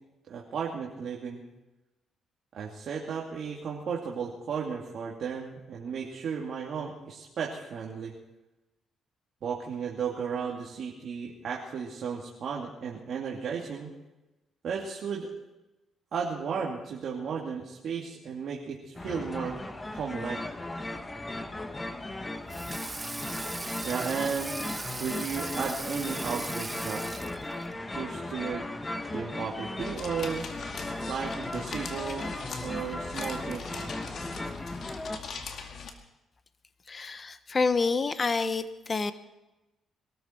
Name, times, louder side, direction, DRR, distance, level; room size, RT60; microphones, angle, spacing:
voice 1, 0.3-1.4 2.5-8.1 9.4-13.9 14.6-15.3 16.1-19.6 19.9-20.4 23.8-24.5 25.0-27.1 27.9-28.7 29.1-30.4 31.0-32.3 32.6-34.0, right 6 dB, 60° right, -2 dB, 2.4 m, -34 dB
sound 1, 19.0-35.2, left 2 dB, 20° left, 1.4 m, -37 dB
Water tap faucet / Sink (filling or washing), 22.5-27.7, right 3 dB, 20° right, 0.7 m, -39 dB
sound 2, 29.8-35.9, left 5 dB, 60° left, 2.2 m, -41 dB
voice 2, 36.9-39.1, left 4 dB, 35° left, 12 dB, 1.0 m, -28 dB
22.5 x 13.5 x 4.5 m, 1.0 s
cardioid pair, 90°, 0 cm